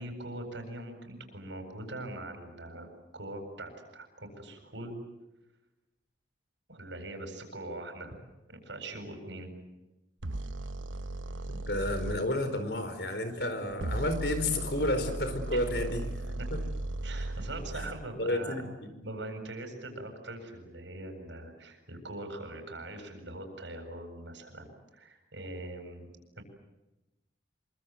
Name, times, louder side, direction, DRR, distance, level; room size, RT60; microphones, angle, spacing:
voice 1, 0.0-4.9 6.7-8.2 8.5-9.5 15.5-15.6 17.0-18.6 19.0-26.4, right 1 dB, 70° right, 5 dB, 7.8 m, -42 dB
sound 1, 10.2-12.2 13.7-18.1, right 2 dB, 85° right, 1.1 m, -36 dB
voice 2, 11.7-16.0 16.5-16.6 17.8-17.9 18.2-18.9, left 1 dB, 55° left, 9 dB, 4.7 m, -31 dB
28.0 x 24.5 x 8.0 m, 0.99 s
head